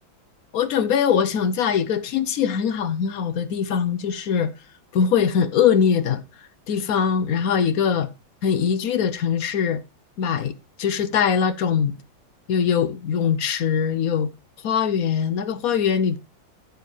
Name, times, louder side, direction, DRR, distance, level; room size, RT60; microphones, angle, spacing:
voice 1, 0.5-4.5 4.9-6.2 6.7-8.1 8.4-9.8 10.2-10.5 10.8-12.0 12.5-14.3 14.6-16.2, left 7 dB, 65° left, 0.9 m, -22 dB
14.0 x 7.1 x 3.2 m
omnidirectional pair, 2.1 m